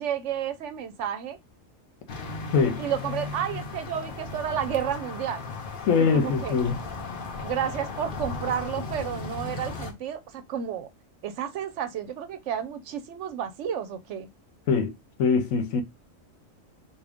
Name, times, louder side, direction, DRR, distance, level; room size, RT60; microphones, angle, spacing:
voice 1, 0.0-1.4 2.8-5.4 6.1-6.6 7.4-10.9 11.2-14.3, right 9 dB, 70° right, 0.9 m, -31 dB
sound 1, 2.1-9.9, left 3 dB, 50° left, 0.8 m, -36 dB
voice 2, 2.5-2.8 5.9-6.8 14.7-14.9 15.2-15.8, left 5 dB, 80° left, 1.1 m, -22 dB
3.6 x 2.5 x 3.5 m
omnidirectional pair, 1.4 m